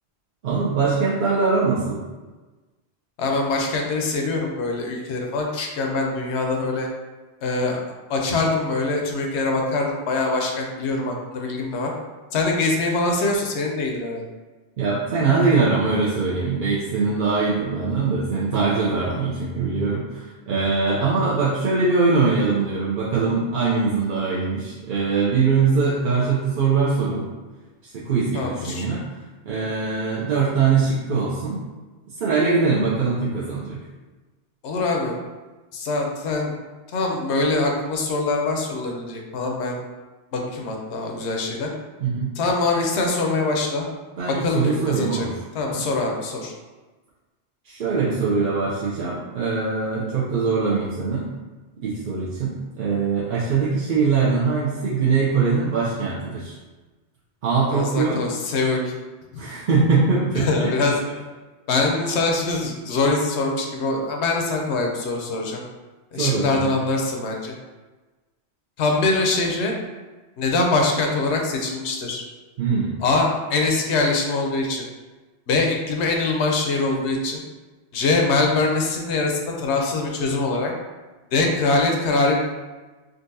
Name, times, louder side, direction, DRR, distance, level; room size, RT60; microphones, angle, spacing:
voice 1, 0.4-2.0 14.8-27.3 27.9-29.0 29.5-31.6 32.2-33.8 42.0-42.3 44.2-45.4 45.7-45.8 47.6-51.3 51.8-56.5 57.4-58.2 59.4-60.7 66.2-66.8 72.6-73.0, right 4 dB, 55° right, -7 dB, 0.6 m, -22 dB
voice 2, 3.2-6.9 7.4-7.8 8.1-11.9 12.3-14.2 28.3-28.9 34.6-35.2 35.7-36.5 36.9-39.8 40.3-41.7 42.4-43.8 44.2-45.3 45.5-46.5 57.7-58.9 59.3-59.4 60.3-60.9 61.7-65.6 66.1-67.5 68.8-69.7 70.4-72.2 73.0-74.9 75.5-77.4 77.9-80.7 81.3-82.4, left 3 dB, 75° left, 1 dB, 0.9 m, -23 dB
3.8 x 2.4 x 2.6 m, 1.2 s
omnidirectional pair, 1.2 m